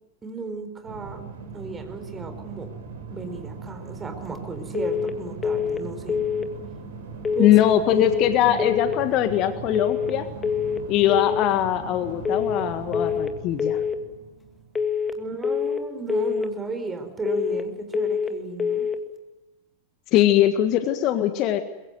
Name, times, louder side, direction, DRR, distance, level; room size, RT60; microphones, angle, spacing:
voice 1, 0.2-1.3 1.5-2.7 3.1-6.2 7.3-7.6 15.2-18.9, right 4 dB, 15° right, 7 dB, 4.4 m, -34 dB
sound 1, 0.8-15.3, right 5 dB, 60° right, 5.3 m, -39 dB
sound 2, 4.7-5.1 5.4-5.8 6.1-6.5 7.2-7.6 7.9-8.3 8.6-9.0 9.7-10.1 10.4-10.8 11.1-11.5 12.2-12.6 12.9-13.3 13.6-14.0 14.7-15.1 15.4-15.8 16.1-16.5 17.3-17.7 17.9-18.3 18.6-19.0, left 7 dB, 15° left, 2.1 m, -25 dB
voice 2, 7.4-10.3 10.9-13.8 20.1-21.6, left 12 dB, 40° left, 9 dB, 1.6 m, -21 dB
23.5 x 22.5 x 9.3 m, 1.0 s
figure-of-eight pair, 90°, 0 cm